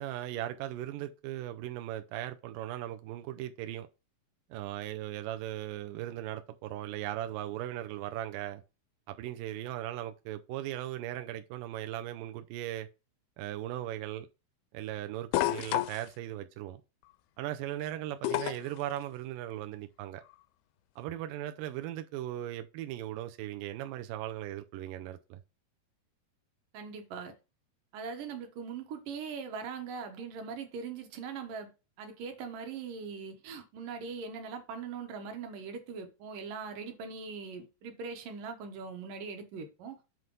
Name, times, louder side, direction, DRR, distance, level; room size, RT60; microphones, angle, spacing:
voice 1, 0.0-3.9 4.5-8.6 9.1-12.9 13.4-14.3 14.7-16.8 17.4-20.2 21.0-25.4, right 13 dB, 85° right, 1.9 m, -38 dB
sound 1, 15.3-16.1 18.2-18.8 20.3-20.4, left 16 dB, 80° left, 2.3 m, -29 dB
voice 2, 26.7-27.4 27.9-31.7 32.0-40.0, right 5 dB, 65° right, 2.6 m, -41 dB
7.8 x 3.1 x 5.3 m
omnidirectional pair, 4.6 m